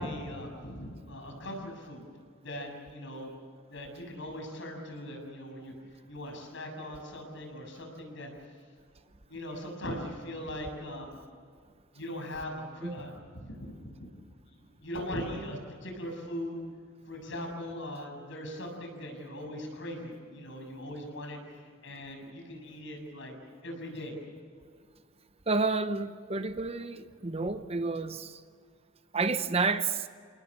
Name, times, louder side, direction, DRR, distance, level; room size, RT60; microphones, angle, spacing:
voice 1, 0.0-2.1 2.4-3.4 3.7-5.7 6.1-8.3 9.3-11.2 11.9-13.7 14.0-14.1 14.8-16.6 17.1-21.4 21.8-23.3 23.6-24.2, left 1 dB, 60° left, 7.1 m, -40 dB
voice 2, 25.5-28.4 29.1-30.1, right 4 dB, 30° right, 0.8 m, -30 dB
29.5 x 19.0 x 7.5 m
head